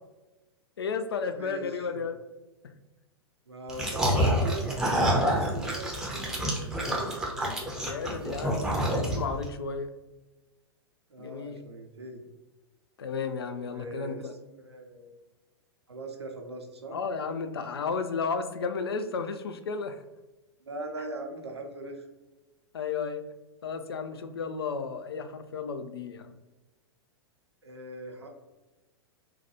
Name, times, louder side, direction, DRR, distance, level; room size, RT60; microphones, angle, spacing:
voice 1, 0.8-2.2 7.8-9.9 11.2-11.6 13.0-14.3 16.9-20.0 22.7-23.2 23.6-26.3, left 5 dB, 65° left, 8 dB, 0.4 m, -33 dB
voice 2, 1.3-2.0 3.5-4.9 5.2-7.2 11.1-12.2 13.6-15.1 15.9-17.0 20.7-22.1 27.6-28.3, right 2 dB, 75° right, 2 dB, 0.6 m, -40 dB
sound 1, 3.7-9.4, equal, 5° right, 0.6 m, -27 dB
3.8 x 2.2 x 2.9 m, 1.1 s
figure-of-eight pair, 100°, 14 cm